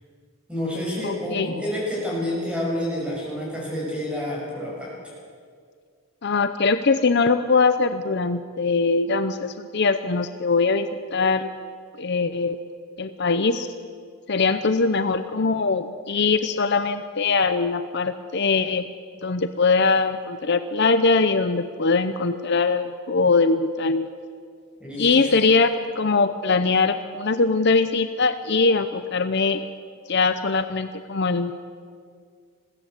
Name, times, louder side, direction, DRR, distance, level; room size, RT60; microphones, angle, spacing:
voice 1, 0.5-4.9 24.8-25.3, left 1 dB, 5° right, -4 dB, 7.2 m, -28 dB
voice 2, 1.0-1.5 6.2-11.5 12.0-12.6 13.0-13.7 14.3-18.8 19.2-24.1 25.0-29.6 30.1-31.5, left 4 dB, 50° left, 10 dB, 0.7 m, -22 dB
21.5 x 16.0 x 8.2 m, 2.1 s
head